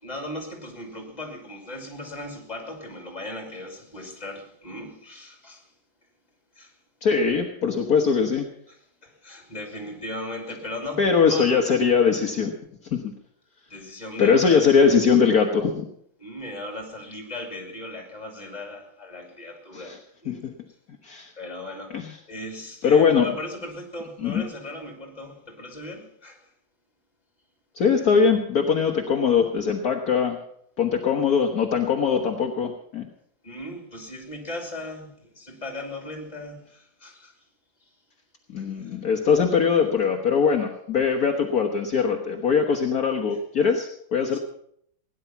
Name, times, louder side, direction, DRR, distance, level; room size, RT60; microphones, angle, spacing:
voice 1, 0.0-5.7 6.5-6.8 8.7-11.6 13.7-14.6 16.2-20.5 21.4-26.5 33.4-37.3 37.8-37.9 38.6-38.9 44.3-44.4, left 1 dB, 20° left, 3 dB, 3.0 m, -38 dB
voice 2, 7.0-8.5 11.0-12.5 12.9-13.1 14.2-15.9 19.7-20.0 20.3-20.5 21.0-21.3 21.9-22.1 22.8-23.3 24.2-24.4 27.8-30.4 30.8-33.1 38.5-44.4, left 6 dB, 55° left, 3 dB, 1.6 m, -21 dB
17.5 x 10.5 x 5.8 m, 0.67 s
omnidirectional pair, 2.0 m